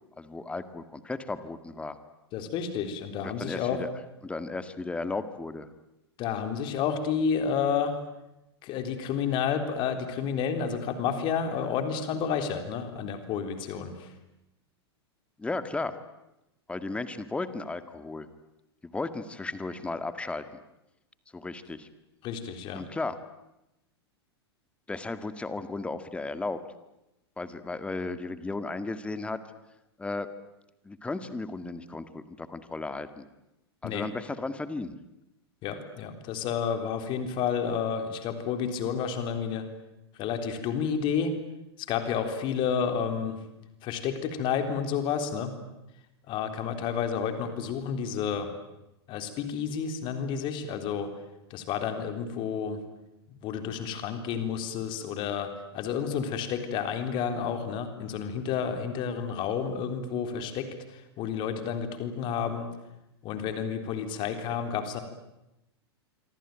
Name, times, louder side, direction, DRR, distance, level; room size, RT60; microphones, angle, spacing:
voice 1, 0.2-2.0 3.2-3.9 4.2-5.7 15.4-16.0 16.7-18.3 18.8-20.6 21.3-21.9 22.7-23.2 24.9-26.6 27.4-29.4 30.0-30.3 30.8-33.2 33.8-35.0, left 3 dB, 10° left, 11 dB, 1.9 m, -35 dB
voice 2, 2.3-3.8 6.2-8.0 8.6-14.1 22.2-22.8 33.8-34.1 35.6-39.7 40.2-41.3 41.8-43.4 43.8-45.6 46.3-48.5 49.1-51.1 51.5-52.8 53.3-62.7 63.2-65.0, left 7 dB, 35° left, 7 dB, 3.7 m, -30 dB
27.0 x 24.5 x 9.2 m, 0.92 s
figure-of-eight pair, 95°, 14 cm